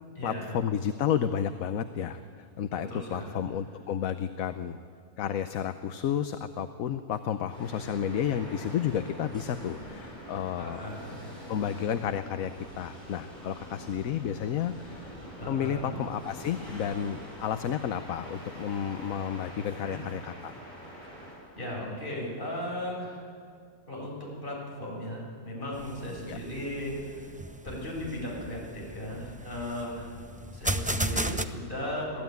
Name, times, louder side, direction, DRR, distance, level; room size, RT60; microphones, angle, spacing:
voice 1, 0.2-2.2 2.6-4.8 5.2-10.8 11.5-12.5 12.8-15.1 15.5-20.5 26.3-26.4, left 9 dB, 70° left, 9 dB, 1.2 m, -31 dB
voice 2, 2.7-3.3 10.6-11.3 15.4-16.0 19.8-20.0 21.6-23.2 23.9-24.1 24.4-27.3 27.6-30.1 30.5-32.2, left 1 dB, 35° left, -3 dB, 7.0 m, -36 dB
sound 1, 7.4-22.6, equal, 30° right, 7.4 m, -45 dB
sound 2, 25.7-31.4, right 1 dB, 10° right, 0.3 m, -35 dB
26.5 x 17.0 x 9.3 m, 2.2 s
omnidirectional pair, 1.6 m